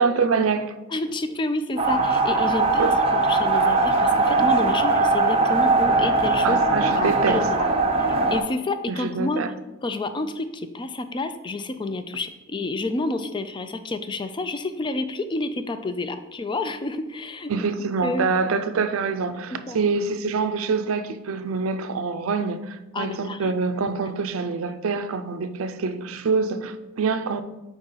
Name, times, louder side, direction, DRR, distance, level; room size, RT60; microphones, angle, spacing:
voice 1, 0.0-0.8 2.8-3.0 6.4-7.5 8.9-9.5 17.5-27.4, right 4 dB, 80° right, 0.5 m, -25 dB
voice 2, 0.9-2.9 3.3-6.6 6.9-7.7 8.3-9.4 9.8-17.5 18.0-18.3 19.7-19.8 22.9-23.5, left 2 dB, 25° left, 0.4 m, -29 dB
sound 1, 1.8-8.4, right 3 dB, 30° right, 0.6 m, -20 dB
4.8 x 3.8 x 5.5 m
head